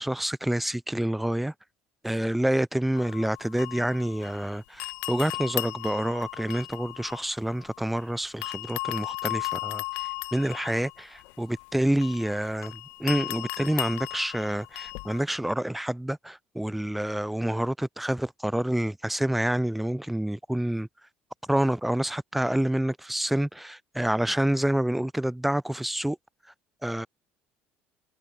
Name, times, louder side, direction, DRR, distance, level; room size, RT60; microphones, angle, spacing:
voice 1, 0.0-1.5 2.0-9.8 10.3-12.7 13.0-20.9 21.5-26.2 26.8-27.1, right 1 dB, 5° right, 0.6 m, -28 dB
sound 1, 3.0-4.5 4.8-8.0 8.4-15.2, left 32 dB, 85° left, 1.1 m, -36 dB
cardioid pair, 135°, 4 cm